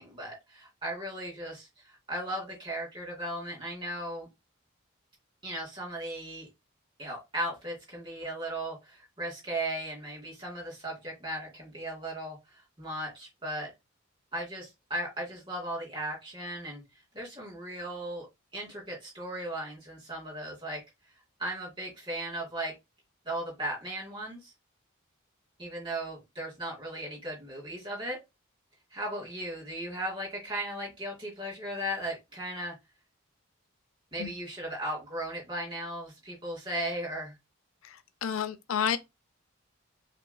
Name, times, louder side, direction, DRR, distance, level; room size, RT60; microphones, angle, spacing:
voice 1, 0.0-4.3 5.4-6.5 7.0-13.7 14.3-16.8 17.1-18.3 18.5-20.8 21.4-22.7 23.2-24.5 25.6-28.2 28.9-32.7 34.1-37.3, right 1 dB, 25° right, 2.7 m, -36 dB
voice 2, 37.8-39.0, left 8 dB, 80° left, 0.5 m, -31 dB
5.6 x 3.6 x 2.3 m
head